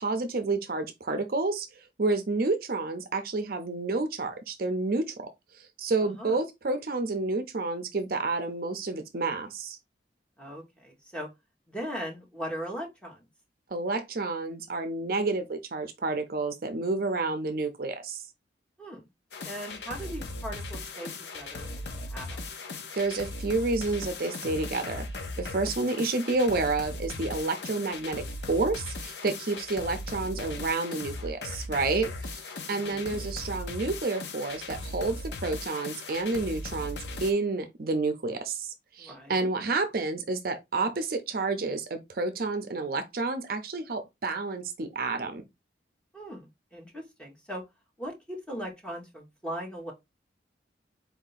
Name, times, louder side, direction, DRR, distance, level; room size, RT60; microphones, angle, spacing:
voice 1, 0.0-5.3 5.5-9.8 13.7-18.2 23.0-25.1 25.4-45.4, right 3 dB, 55° right, 0.5 m, -30 dB
voice 2, 6.0-6.4 10.4-11.3 11.7-13.3 18.8-19.0 19.4-22.4 32.6-33.2 39.0-39.5 46.1-47.6 48.0-49.9, equal, 5° left, 1.2 m, -39 dB
sound 1, 19.3-37.3, left 2 dB, 70° left, 0.7 m, -38 dB
4.3 x 2.7 x 3.9 m
head